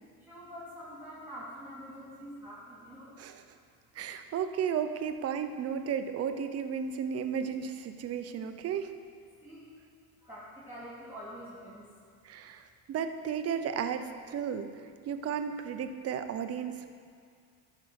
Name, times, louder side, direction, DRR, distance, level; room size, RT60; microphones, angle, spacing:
voice 1, 0.3-3.1 9.4-9.7 10.2-11.8, equal, 5° right, -8 dB, 2.9 m, -45 dB
voice 2, 3.9-8.9 12.2-14.7 15.1-16.9, right 7 dB, 35° right, 8 dB, 0.8 m, -34 dB
12.5 x 5.7 x 6.5 m, 2.2 s
supercardioid pair, 100°, 42 cm